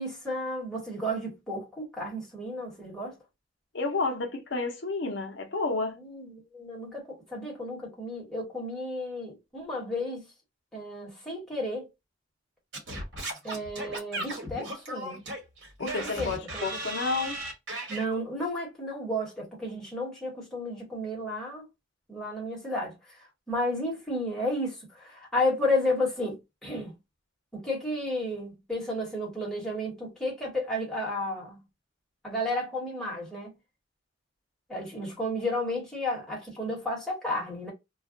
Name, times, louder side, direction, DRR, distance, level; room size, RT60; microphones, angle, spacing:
voice 1, 0.0-3.1 6.0-10.2 10.7-11.9 13.4-15.2 16.0-16.8 17.9-21.7 22.1-23.0 23.5-26.9 27.5-31.6 32.2-33.5 34.7-37.7, left 1 dB, ahead, 1.1 m, -32 dB
voice 2, 3.7-6.0 15.8-17.4, left 3 dB, 65° left, 0.6 m, -30 dB
Singing / Scratching (performance technique), 12.7-18.0, right 1 dB, 60° right, 1.3 m, -36 dB
2.3 x 2.1 x 3.6 m
head